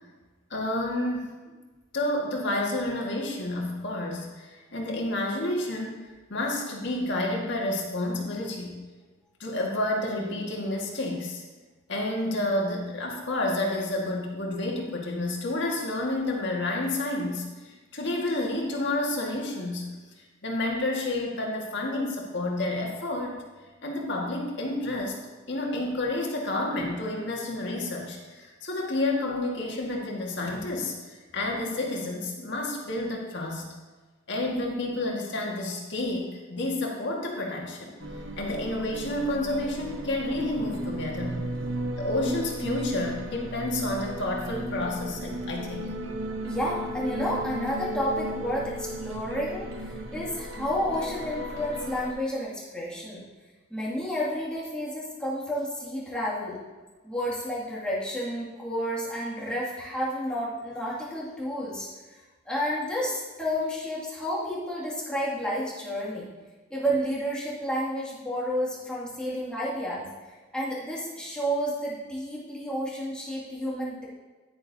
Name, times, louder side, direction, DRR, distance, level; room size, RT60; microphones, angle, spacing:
voice 1, 0.5-1.4 1.9-8.8 9.4-11.4 11.9-19.9 20.4-23.3 23.8-25.2 25.5-33.6 34.3-37.9 38.4-41.4 42.0-45.9, left 1 dB, 65° left, -1 dB, 1.8 m, -30 dB
sound 1, 38.0-52.1, right 1 dB, 80° right, 0.9 m, -35 dB
voice 2, 46.4-53.2 53.7-56.6 57.0-61.9 62.5-66.3 66.7-74.0, equal, 5° left, -7 dB, 2.3 m, -31 dB
10.0 x 9.7 x 2.8 m, 1.3 s
head